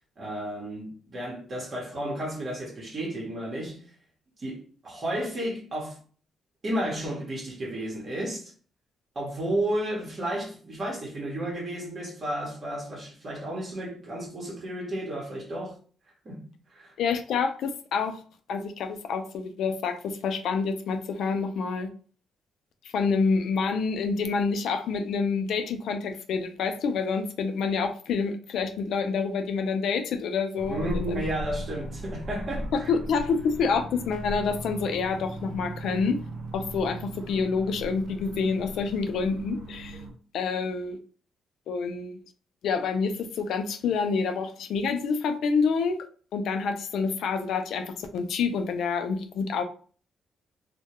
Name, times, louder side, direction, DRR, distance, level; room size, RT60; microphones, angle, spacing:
voice 1, 0.2-3.9 4.4-6.0 6.6-8.5 9.1-15.8 16.2-16.9 30.7-32.9, right 1 dB, 40° right, 0.9 m, -32 dB
voice 2, 17.0-18.2 18.5-21.9 22.9-31.2 32.9-36.2 36.5-40.0 40.3-41.0 41.7-42.2 42.6-46.0 46.3-49.6, left 5 dB, 75° left, 0.3 m, -27 dB
sound 1, 30.6-40.1, right 1 dB, 85° right, 0.7 m, -38 dB
2.1 x 2.1 x 2.9 m
cardioid pair, 90°, 0 cm